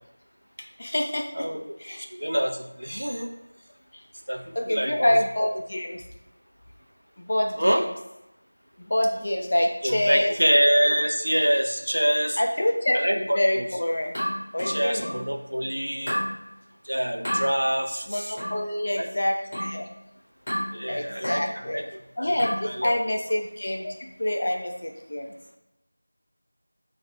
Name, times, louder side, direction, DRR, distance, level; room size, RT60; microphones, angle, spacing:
voice 1, 0.8-1.5 1.8-2.1 3.9-4.0 4.5-6.0 7.2-7.9 8.8-10.3 12.4-14.1 14.5-15.2 18.1-19.8 20.9-21.8 22.2-25.3, left 1 dB, 40° left, 2 dB, 0.5 m, -26 dB
voice 2, 2.1-3.3 4.3-5.2 7.6-7.8 9.8-12.4 12.9-13.4 14.7-16.2 16.9-18.3 18.9-19.1 20.7-21.4 21.7-21.8 22.2-22.3 22.6-22.9, equal, 80° right, 4 dB, 0.5 m, -25 dB
sound 1, 14.1-15.3 16.1-16.3 17.2-17.5 18.4-18.6 19.5-19.8 20.5-20.8 21.2-21.5 22.4-22.7, equal, 20° left, 1.5 m, -30 dB
4.3 x 2.5 x 3.2 m, 0.91 s
figure-of-eight pair, 175°, 0 cm